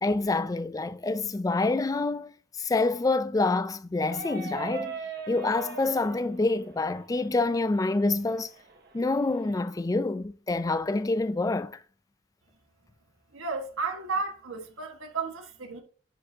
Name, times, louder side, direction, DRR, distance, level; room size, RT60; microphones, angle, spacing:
voice 1, 0.0-5.0 5.3-8.5 8.9-11.7, left 3 dB, 15° left, 0.3 m, -27 dB
sound 1, 4.0-9.6, right 4 dB, 50° right, 1.2 m, -41 dB
voice 2, 13.3-15.8, right 4 dB, 85° right, 1.5 m, -33 dB
10.5 x 4.6 x 2.7 m
head